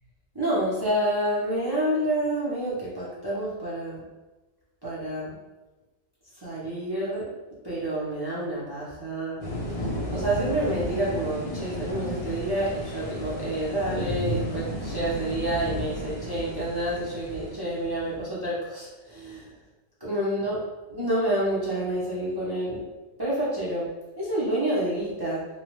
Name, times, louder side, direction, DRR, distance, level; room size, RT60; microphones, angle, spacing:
voice 1, 0.3-4.0 4.8-5.3 6.4-7.2 7.6-9.4 10.1-19.5 20.0-20.6 20.9-22.8 23.2-23.9 24.2-25.5, right 1 dB, 25° right, -9 dB, 0.5 m, -28 dB
sound 1, 9.4-18.2, equal, 65° left, 0.3 m, -33 dB
2.8 x 2.0 x 3.0 m, 1.1 s
omnidirectional pair, 1.3 m